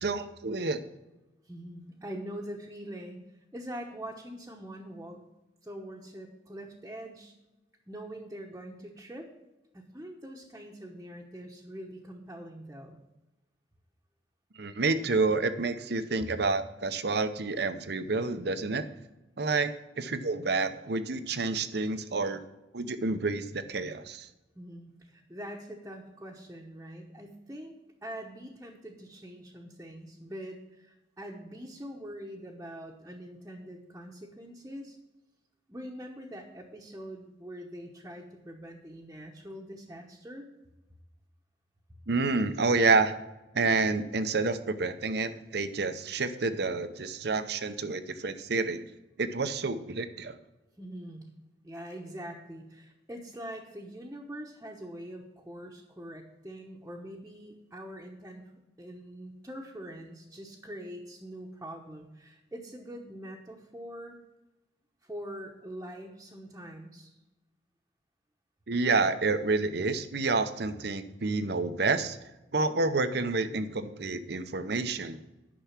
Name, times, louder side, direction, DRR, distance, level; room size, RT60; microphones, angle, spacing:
voice 1, 0.0-0.8 14.6-18.8 19.4-22.4 22.7-24.3 42.1-43.1 43.5-48.8 49.2-50.4 68.7-72.2 72.5-75.2, right 3 dB, 65° right, 11 dB, 0.7 m, -29 dB
voice 2, 1.5-3.2 3.5-5.2 5.6-7.3 7.9-9.3 9.7-13.0 24.5-27.7 28.0-35.0 35.7-40.5 50.8-51.2 51.6-58.4 58.8-64.2 65.0-67.1, equal, 15° right, -2 dB, 1.1 m, -43 dB
10.5 x 6.1 x 5.9 m, 1.0 s
head